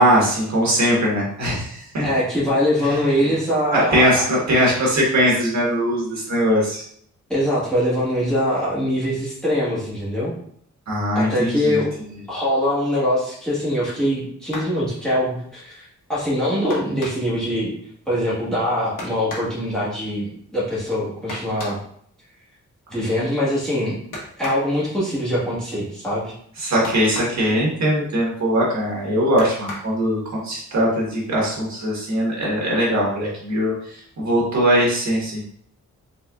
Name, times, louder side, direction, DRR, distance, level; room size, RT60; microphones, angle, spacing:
voice 1, 0.0-2.1 2.8-3.0 3.7-6.8 10.9-11.8 26.6-33.7 34.2-35.5, equal, 65° right, -4 dB, 1.4 m, -20 dB
voice 2, 2.0-4.2 7.3-10.3 11.1-11.9 12.3-17.7 18.1-21.8 22.9-24.0 24.4-26.3, equal, ahead, -8 dB, 1.4 m, -23 dB
sound 1, 14.4-14.8 16.7-17.4 19.0-19.6 21.3-21.9 24.1-24.7 26.8-27.5 29.4-30.0 31.1-31.2 31.6-31.8, left 1 dB, 85° left, 1.2 m, -34 dB
4.3 x 3.7 x 2.3 m, 0.64 s
wide cardioid pair, 165°, 30 cm